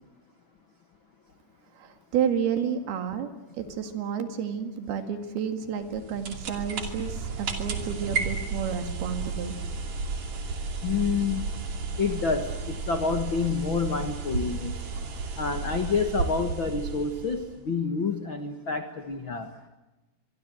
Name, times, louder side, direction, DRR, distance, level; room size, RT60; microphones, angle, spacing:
voice 1, 1.7-9.6, right 8 dB, 70° right, 8 dB, 3.8 m, -31 dB
sound 1, 5.8-17.6, right 4 dB, 45° right, 3.6 m, -33 dB
voice 2, 10.8-11.5 12.0-14.7 15.4-19.5, left 5 dB, 60° left, 7 dB, 1.3 m, -28 dB
25.0 x 23.5 x 7.7 m, 1.1 s
omnidirectional pair, 4.8 m